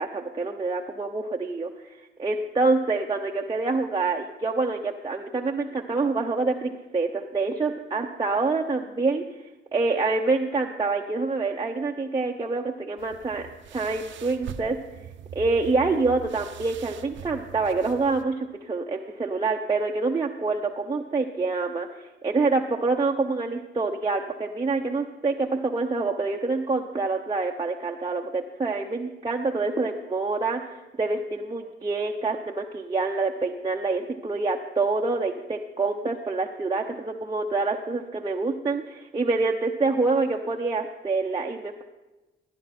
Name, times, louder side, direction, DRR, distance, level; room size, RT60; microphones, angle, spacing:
voice 1, 0.0-1.7 2.2-9.2 9.7-13.4 13.7-14.8 15.3-21.9 22.2-41.8, right 3 dB, 20° right, 0 dB, 0.8 m, -26 dB
sound 1, 13.0-18.2, right 9 dB, 75° right, 0.8 m, -42 dB
16.0 x 10.5 x 4.3 m, 1.1 s
cardioid pair, 90°, 20 cm